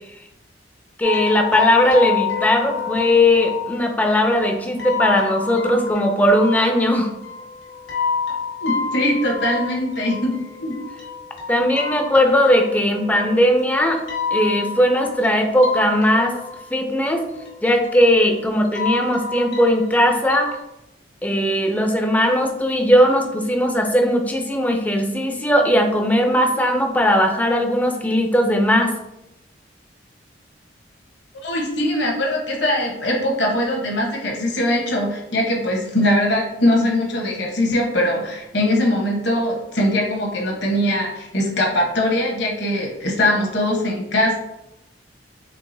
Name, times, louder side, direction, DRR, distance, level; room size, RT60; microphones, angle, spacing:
sound 1, 1.0-20.6, left 6 dB, 80° left, 1.4 m, -29 dB
voice 1, 1.0-7.1 11.5-14.0 14.3-16.4 16.7-17.3 17.6-20.6 21.2-28.9, equal, 10° left, 3 dB, 0.4 m, -18 dB
voice 2, 8.6-10.3 10.6-10.8 31.4-44.4, left 1 dB, 65° left, -1 dB, 1.0 m, -21 dB
4.6 x 3.6 x 2.6 m, 0.88 s
head